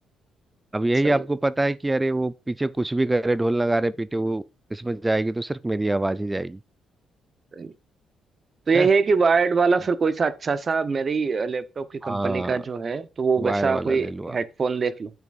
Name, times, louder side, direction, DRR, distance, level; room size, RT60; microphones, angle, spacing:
voice 1, 0.7-4.4 4.7-6.6 8.7-8.9 12.0-12.6 13.4-14.4, right 2 dB, 15° right, 0.4 m, -25 dB
voice 2, 8.7-15.1, right 5 dB, 40° right, 0.8 m, -23 dB
8.9 x 6.0 x 2.5 m
cardioid pair, 90°, 0 cm